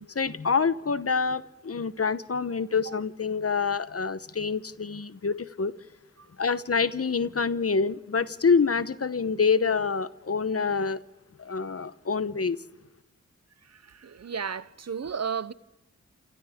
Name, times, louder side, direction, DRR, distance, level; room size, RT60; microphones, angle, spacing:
voice 1, 0.1-5.7 6.4-11.0 11.4-12.6, left 5 dB, 50° left, 0.9 m, -26 dB
voice 2, 13.6-15.5, right 6 dB, 60° right, 0.7 m, -34 dB
28.0 x 27.5 x 3.6 m
cardioid pair, 45°, 30 cm